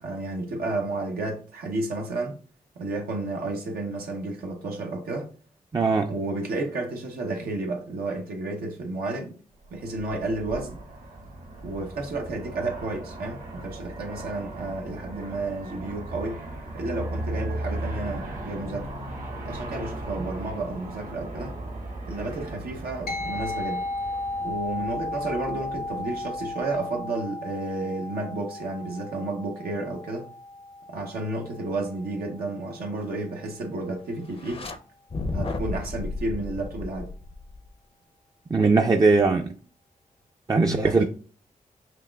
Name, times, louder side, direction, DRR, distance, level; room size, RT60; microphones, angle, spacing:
voice 1, 0.0-2.4 2.8-5.3 6.1-9.4 9.7-10.8 11.6-16.4 16.7-18.9 19.4-21.5 22.1-23.9 24.4-30.3 30.9-34.7 35.3-37.1 40.6-41.0, right 2 dB, 85° right, 0.8 m, -31 dB
voice 2, 5.7-6.1 38.5-39.5 40.5-41.0, right 3 dB, 25° right, 0.4 m, -20 dB
Aircraft, 9.7-27.0, right 1 dB, 60° right, 1.1 m, -37 dB
sound 1, 23.1-32.8, left 2 dB, 80° left, 0.9 m, -35 dB
sound 2, 34.3-34.8 35.1-37.7, left 3 dB, 40° left, 0.5 m, -33 dB
5.7 x 2.4 x 2.3 m
cardioid pair, 50°, 15 cm